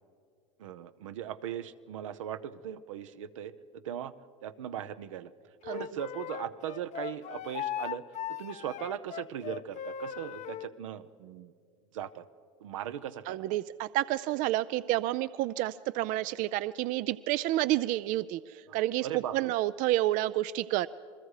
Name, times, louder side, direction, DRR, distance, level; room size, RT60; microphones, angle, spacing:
voice 1, 0.6-4.1 4.4-5.3 5.7-8.0 8.4-11.5 11.9-12.2 12.6-13.6 18.7-19.5, right 10 dB, 85° right, 11 dB, 0.8 m, -39 dB
Wind instrument woodwind instrument, 5.6-10.7, left 10 dB, 50° left, 0.7 m, -38 dB
voice 2, 13.3-20.9, right 15 dB, 60° right, 16 dB, 0.5 m, -29 dB
28.0 x 21.5 x 4.9 m, 2.3 s
hypercardioid pair, 90°, 16 cm